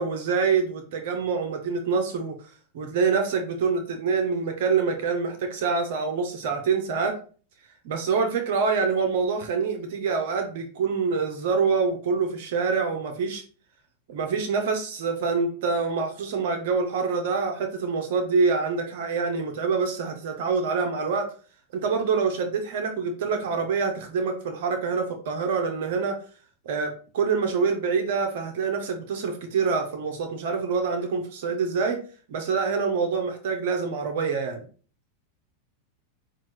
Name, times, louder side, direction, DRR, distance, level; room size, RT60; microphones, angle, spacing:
voice 1, 0.0-2.3 2.7-7.1 7.8-13.4 14.1-21.3 21.7-26.2 26.7-32.0 32.3-34.6, right 5 dB, 65° right, 5 dB, 0.7 m, -26 dB
5.5 x 2.4 x 3.1 m, 0.40 s
hypercardioid pair, 95°, 0 cm